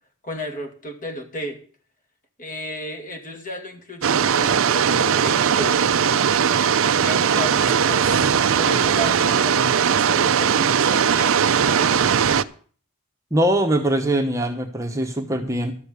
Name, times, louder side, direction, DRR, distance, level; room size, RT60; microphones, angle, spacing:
voice 1, 0.2-1.6 2.4-5.9 7.0-12.0, equal, 40° left, 4 dB, 2.5 m, -33 dB
sound 1, 4.0-12.4, right 7 dB, 65° right, 0.6 m, -19 dB
voice 2, 13.3-15.7, right 1 dB, 15° right, 3 dB, 1.1 m, -22 dB
12.5 x 7.1 x 8.2 m, 0.43 s
head